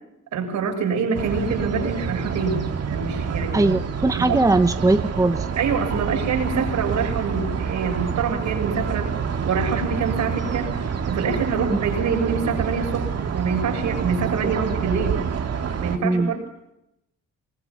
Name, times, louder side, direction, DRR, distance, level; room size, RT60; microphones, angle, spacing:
voice 1, 0.3-3.8 4.2-4.4 5.6-9.1 9.4-10.7 11.1-13.1 13.3-15.2 15.8-16.4, right 5 dB, 75° right, 2 dB, 7.1 m, -25 dB
sound 1, 1.1-16.0, right 6 dB, 55° right, 2.7 m, -27 dB
voice 2, 3.5-5.5 11.7-11.8 14.4-14.5 16.0-16.3, right 2 dB, 10° right, 9 dB, 1.1 m, -20 dB
24.0 x 20.5 x 7.3 m, 0.85 s
cardioid pair, 90°, 30 cm